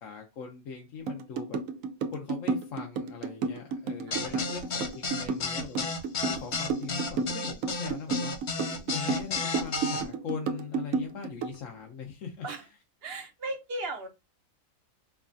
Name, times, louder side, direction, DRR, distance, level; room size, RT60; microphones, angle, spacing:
voice 1, 0.0-1.6 2.1-5.9 6.2-8.3 8.9-12.5, left 6 dB, 75° left, 1 dB, 1.1 m, -40 dB
sound 1, 1.1-11.6, right 4 dB, 80° right, 1.0 m, -31 dB
sound 2, 4.1-10.0, left 3 dB, 45° left, 0.7 m, -32 dB
voice 2, 4.1-5.7 12.4-12.7 13.0-14.1, right 2 dB, 55° right, 5 dB, 0.9 m, -39 dB
4.7 x 2.3 x 2.5 m, 0.25 s
omnidirectional pair, 1.4 m